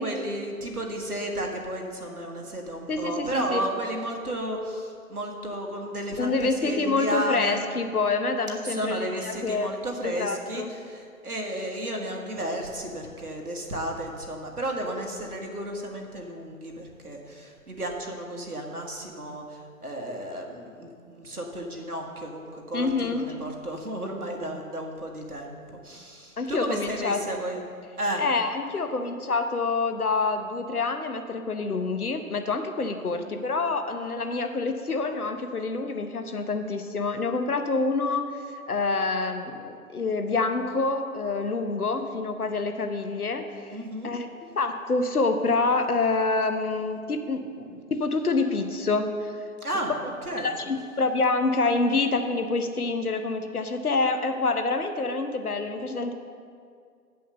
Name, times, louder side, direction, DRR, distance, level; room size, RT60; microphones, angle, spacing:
voice 1, 0.0-7.6 8.6-27.6 28.0-28.2 33.0-33.2 43.7-44.1 49.6-49.9 50.3-50.6, right 1 dB, 90° right, 1 dB, 1.5 m, -33 dB
voice 2, 2.9-3.6 6.2-9.7 10.0-10.7 22.7-23.3 26.4-27.4 28.2-38.4 38.7-43.8 44.0-49.3 50.4-56.1, left 3 dB, 80° left, 7 dB, 1.0 m, -27 dB
8.2 x 5.6 x 6.6 m, 2.2 s
figure-of-eight pair, 130°, 44 cm